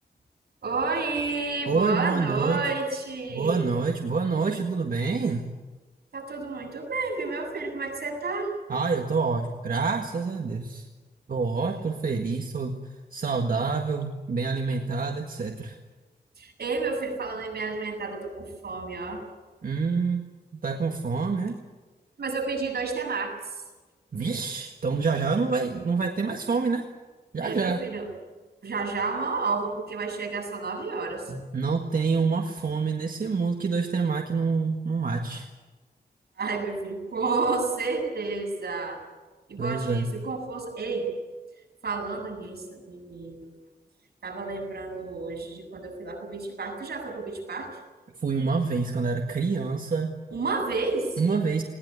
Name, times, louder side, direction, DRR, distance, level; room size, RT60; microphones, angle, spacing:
voice 1, 0.6-3.7 6.1-8.5 16.4-19.2 22.2-23.6 27.4-28.1 28.6-31.4 36.4-39.0 39.5-41.2 41.8-43.5 44.2-47.8 50.3-51.2, right 3 dB, 85° right, 1 dB, 7.5 m, -30 dB
voice 2, 1.7-2.6 3.3-5.4 8.7-10.9 11.3-12.8 13.1-15.8 19.6-20.2 20.6-21.6 24.1-26.9 27.3-27.8 31.5-35.5 39.6-40.1 48.2-50.1 51.2-51.6, right 4 dB, 60° right, 3 dB, 1.8 m, -27 dB
20.5 x 19.0 x 9.6 m, 1.3 s
wide cardioid pair, 100°, 16 cm